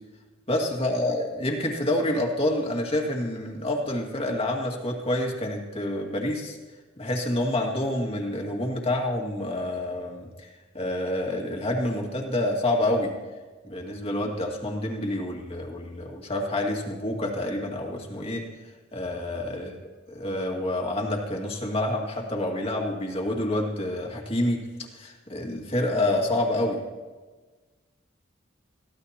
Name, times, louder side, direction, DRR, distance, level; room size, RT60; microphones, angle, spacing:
voice 1, 0.5-6.6 7.0-13.1 13.6-18.4 18.9-19.8 20.1-24.6 24.9-26.8, left 1 dB, 30° left, 0 dB, 2.1 m, -28 dB
22.5 x 15.5 x 2.9 m, 1.3 s
head